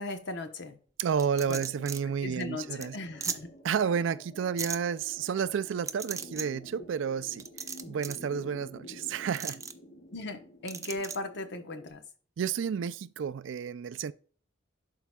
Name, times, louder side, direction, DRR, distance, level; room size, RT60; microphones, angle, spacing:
voice 1, 0.0-0.8 1.4-1.7 2.2-3.6 10.1-12.0, left 2 dB, 65° left, 1.0 m, -37 dB
voice 2, 1.0-2.9 3.6-7.5 7.9-9.6 12.4-14.1, right 7 dB, 75° right, 0.4 m, -31 dB
sound 1, 1.2-11.9, left 1 dB, 50° left, 1.3 m, -51 dB
sound 2, 1.2-2.0 2.4-2.5 2.8-2.9 3.2-3.4 4.6-4.8 5.9-6.5 7.4-8.2 9.3-9.7 10.7-11.2, right 5 dB, 15° right, 0.4 m, -36 dB
11.5 x 4.6 x 2.3 m
head